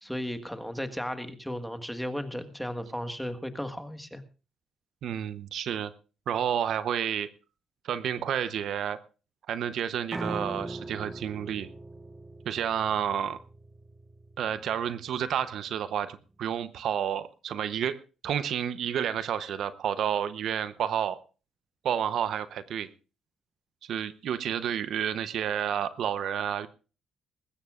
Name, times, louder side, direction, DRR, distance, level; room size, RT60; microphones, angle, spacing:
voice 1, 0.0-4.2, equal, ahead, 8 dB, 1.5 m, -35 dB
voice 2, 5.0-5.9 6.3-7.3 7.8-9.0 9.5-11.7 12.4-13.4 14.4-21.2 21.8-22.9 23.8-26.7, right 9 dB, 70° right, 13 dB, 0.8 m, -30 dB
Piano, 10.1-16.3, right 2 dB, 15° right, 0.8 m, -41 dB
20.0 x 16.0 x 2.4 m, 0.34 s
cardioid pair, 90°, 0 cm